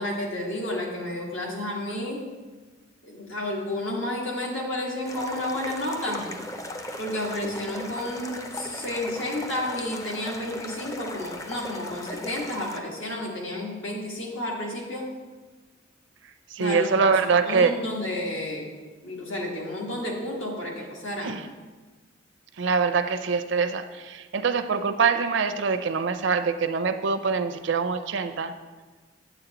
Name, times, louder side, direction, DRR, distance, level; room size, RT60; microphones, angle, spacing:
voice 1, 0.0-2.3 3.0-6.3 7.0-15.1 16.6-18.7 19.0-21.4, left 1 dB, 85° left, -2 dB, 1.7 m, -31 dB
sound 1, 5.0-12.8, left 1 dB, 15° left, 0.4 m, -38 dB
voice 2, 16.5-17.7 21.2-21.4 22.6-28.5, right 5 dB, 65° right, 9 dB, 0.5 m, -24 dB
8.7 x 7.9 x 2.9 m, 1.3 s
head